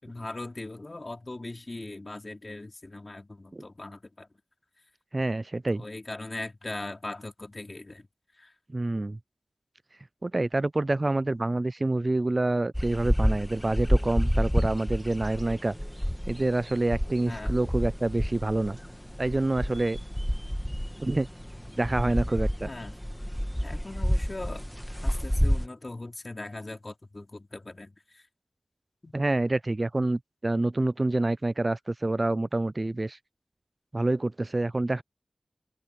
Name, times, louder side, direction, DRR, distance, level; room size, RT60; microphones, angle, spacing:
voice 1, 0.0-4.3 5.7-8.1 8.4-8.5 17.2-17.6 22.6-22.9 23.6-24.7 25.0-28.2 29.0-29.2, left 2 dB, 40° left, 4.4 m, -40 dB
voice 2, 5.1-5.8 8.7-9.2 10.2-15.8 16.3-18.8 19.2-20.0 21.0-21.3 21.8-22.7 29.1-33.2 33.9-35.0, right 2 dB, 35° right, 0.3 m, -27 dB
sound 1, 12.7-25.7, equal, 5° left, 1.6 m, -29 dB
open air
wide cardioid pair, 80°, 0 cm